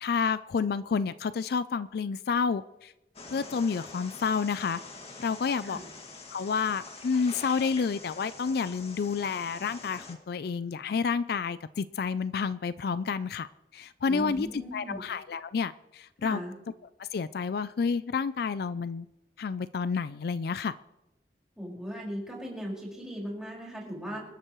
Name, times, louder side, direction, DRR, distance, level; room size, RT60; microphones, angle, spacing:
voice 1, 0.0-2.9 3.3-4.8 5.2-5.8 6.3-16.4 17.1-19.1 19.4-20.7, left 5 dB, 60° left, 15 dB, 0.4 m, -30 dB
sound 1, 3.1-10.1, left 3 dB, 35° left, 2.0 m, -45 dB
voice 2, 14.0-15.0 16.2-16.5 21.6-24.2, equal, 5° right, -3 dB, 5.0 m, -38 dB
27.0 x 12.0 x 3.1 m, 0.96 s
head